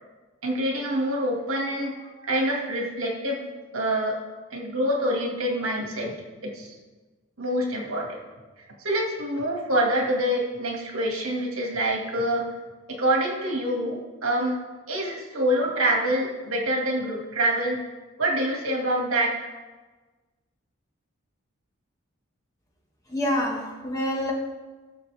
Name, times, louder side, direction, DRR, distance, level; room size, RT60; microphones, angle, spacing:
voice 1, 0.4-3.4 3.7-4.2 4.5-6.1 6.4-6.8 7.4-8.2 8.8-12.5 12.9-14.6 14.9-17.8 18.2-19.5, right 1 dB, 75° right, 0 dB, 2.1 m, -26 dB
voice 2, 23.1-24.3, left 1 dB, 15° left, -2 dB, 1.6 m, -27 dB
17.5 x 6.8 x 3.5 m, 1.3 s
head